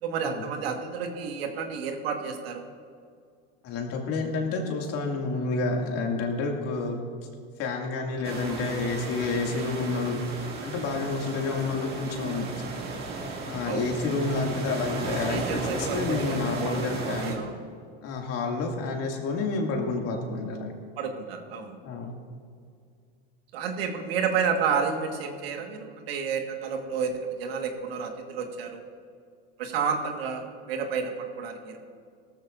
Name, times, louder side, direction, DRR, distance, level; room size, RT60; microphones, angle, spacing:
voice 1, 0.0-2.6 13.6-13.9 15.3-17.6 21.0-21.8 23.5-28.9 29.6-31.8, right 6 dB, 85° right, 4 dB, 1.7 m, -31 dB
voice 2, 3.6-7.0 7.6-10.2 10.6-12.5 13.4-17.4 18.0-20.7 21.8-22.2, left 3 dB, 55° left, 1 dB, 2.4 m, -29 dB
sound 1, 8.2-17.3, right 3 dB, 35° right, 2.4 m, -35 dB
18.0 x 14.0 x 2.6 m, 2.2 s
supercardioid pair, 105°, 29 cm